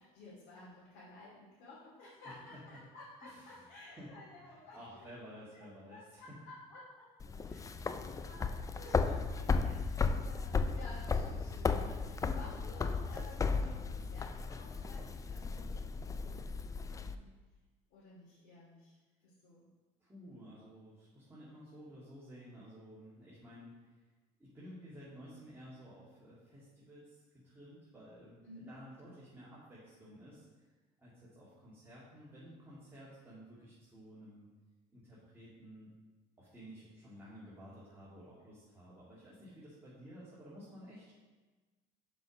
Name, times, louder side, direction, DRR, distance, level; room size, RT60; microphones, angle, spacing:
voice 1, 0.0-5.0 5.5-5.6 5.9-7.1 7.4-16.2 17.0-17.3 17.9-19.0 19.2-19.7 28.4-28.8, left 2 dB, 70° left, -10 dB, 2.6 m, -54 dB
voice 2, 2.2-2.8 3.2-3.7 3.9-4.1 4.4-6.4 20.0-24.0 24.4-30.5 31.0-34.5 34.9-35.9 36.4-41.1, equal, 15° right, -9 dB, 2.3 m, -53 dB
sound 1, 7.2-17.1, left 4 dB, 20° left, 0.4 m, -35 dB
6.1 x 5.1 x 5.3 m, 1.3 s
supercardioid pair, 100°, 16 cm